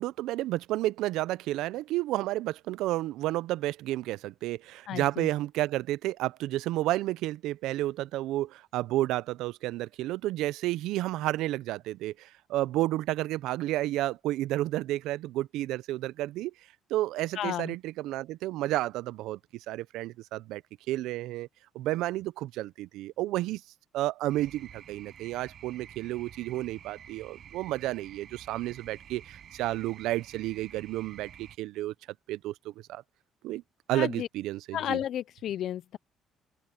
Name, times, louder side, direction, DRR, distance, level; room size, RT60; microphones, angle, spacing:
voice 1, 0.0-16.5 16.9-19.4 19.7-20.6 20.9-21.5 21.7-23.6 23.9-31.9 32.3-33.0 33.4-33.6 33.9-35.0, right 16 dB, 90° right, 0.4 m, -31 dB
voice 2, 4.9-5.3 17.4-17.7 33.9-34.3 34.7-36.0, left 11 dB, 65° left, 0.3 m, -32 dB
sound 1, 24.3-31.6, right 9 dB, 55° right, 7.4 m, -50 dB
open air
cardioid pair, 110°, 0 cm